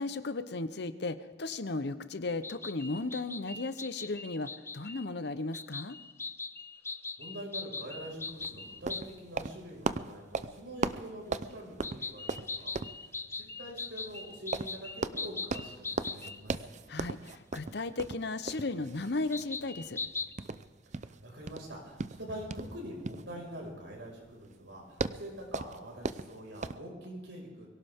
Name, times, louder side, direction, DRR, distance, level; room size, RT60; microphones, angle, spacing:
voice 1, 0.0-6.0 16.9-20.0, left 3 dB, 65° left, 12 dB, 0.9 m, -35 dB
sound 1, 2.4-5.1 5.5-9.1 11.8-16.4 17.3-17.4 19.3-20.3, left 4 dB, 15° left, 0.6 m, -40 dB
voice 2, 7.2-12.7 13.3-16.6 21.0-27.7, equal, 80° right, -1 dB, 5.6 m, -45 dB
sound 2, 8.0-26.8, right 3 dB, 40° right, 0.6 m, -39 dB
23.0 x 17.0 x 3.7 m, 1.4 s
head